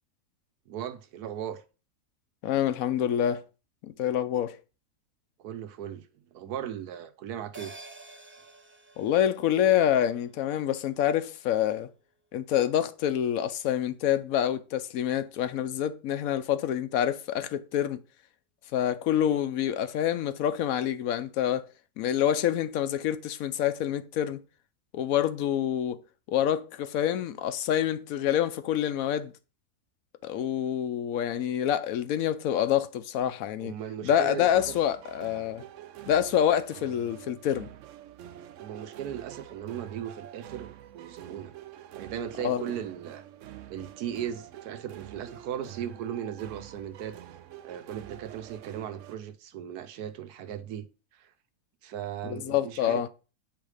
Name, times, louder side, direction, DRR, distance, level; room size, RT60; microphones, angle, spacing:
voice 1, 0.7-1.6 5.4-7.7 33.6-34.8 38.6-41.5 41.9-43.2 43.7-47.2 47.6-50.9 51.1-51.3 51.8-53.1, right 10 dB, 85° right, 1.3 m, -37 dB
voice 2, 2.4-3.4 3.8-4.6 9.0-11.9 12.3-18.0 18.7-21.7 22.0-24.4 24.9-26.0 26.3-29.3 30.2-33.7 34.0-35.6 36.1-37.7 42.4-42.7 52.3-53.1, left 10 dB, 70° left, 1.0 m, -27 dB
sound 1, 7.5-12.3 12.6-12.7, right 2 dB, 15° right, 0.4 m, -51 dB
sound 2, 34.1-49.2, right 12 dB, 65° right, 0.8 m, -46 dB
8.6 x 3.4 x 4.8 m
omnidirectional pair, 1.6 m